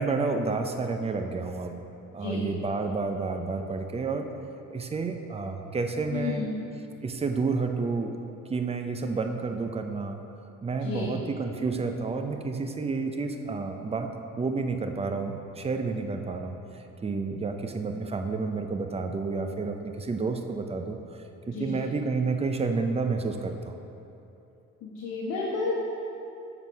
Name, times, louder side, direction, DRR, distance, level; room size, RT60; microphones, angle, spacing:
voice 1, 0.0-1.7 2.1-4.3 4.7-6.5 7.0-8.1 8.5-10.2 10.6-14.1 14.4-23.8, right 4 dB, 20° right, 5 dB, 0.6 m, -30 dB
voice 2, 6.1-6.5 10.8-11.1 21.5-21.8 24.8-25.7, left 4 dB, 70° left, -6 dB, 1.2 m, -31 dB
7.4 x 5.9 x 4.7 m, 2.8 s
cardioid pair, 105°, 31 cm